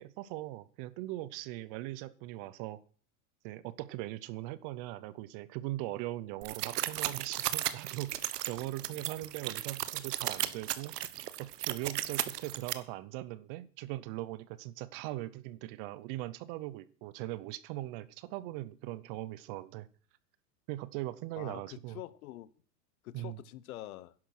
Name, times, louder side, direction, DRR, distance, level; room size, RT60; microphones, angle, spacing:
voice 1, 0.0-2.8 3.4-11.0 11.4-19.9 20.7-22.0 23.1-23.4, right 16 dB, 35° right, 0.7 m, -40 dB
sound 1, 6.4-12.7, right 13 dB, 70° right, 1.3 m, -35 dB
voice 2, 21.3-22.5 23.0-24.1, left 15 dB, 60° left, 1.2 m, -45 dB
11.0 x 11.0 x 6.0 m
supercardioid pair, 140°, 49 cm